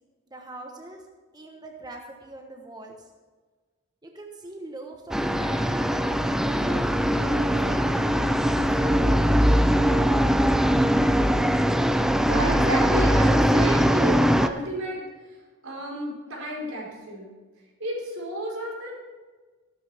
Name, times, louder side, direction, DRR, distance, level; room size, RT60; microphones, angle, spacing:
voice 1, 0.3-1.0 1.3-3.1 4.0-6.9 7.3-8.6, right 2 dB, 20° right, 2 dB, 1.1 m, -42 dB
sound 1, 5.1-14.5, equal, ahead, 0.4 m, -21 dB
voice 2, 12.2-15.0 15.6-17.3 17.8-19.0, right 1 dB, 90° right, -3 dB, 4.4 m, -31 dB
14.5 x 12.5 x 3.5 m, 1.4 s
head